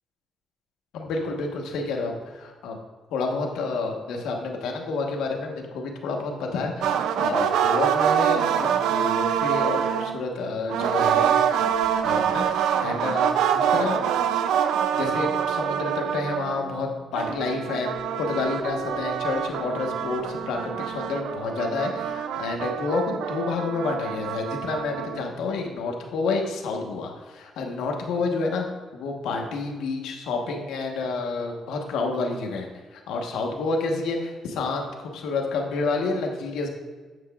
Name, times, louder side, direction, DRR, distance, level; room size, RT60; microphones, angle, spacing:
voice 1, 0.9-2.8 3.1-11.4 12.0-14.1 14.9-28.6 28.9-36.7, left 3 dB, 85° left, 2 dB, 1.1 m, -29 dB
sound 1, 6.8-10.2 10.7-16.8 17.1-25.3, right 8 dB, 85° right, 0.4 m, -25 dB
8.0 x 7.6 x 2.3 m, 1.4 s
cardioid pair, 90°, 0 cm